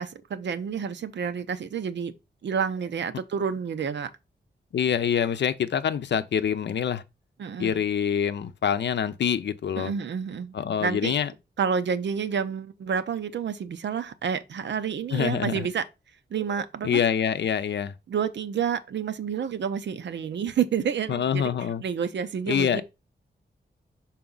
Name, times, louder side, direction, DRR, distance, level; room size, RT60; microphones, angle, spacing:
voice 1, 0.0-2.1 2.4-4.1 7.4-7.8 9.8-10.5 10.8-11.1 11.6-15.8 16.3-17.0 18.1-21.5 21.8-22.8, right 7 dB, 85° right, 0.7 m, -29 dB
voice 2, 4.7-7.0 7.6-9.9 10.5-11.3 15.1-15.7 16.8-17.9 21.1-21.8 22.5-22.8, left 8 dB, 80° left, 0.6 m, -25 dB
5.9 x 4.2 x 3.9 m
wide cardioid pair, 125°, 18 cm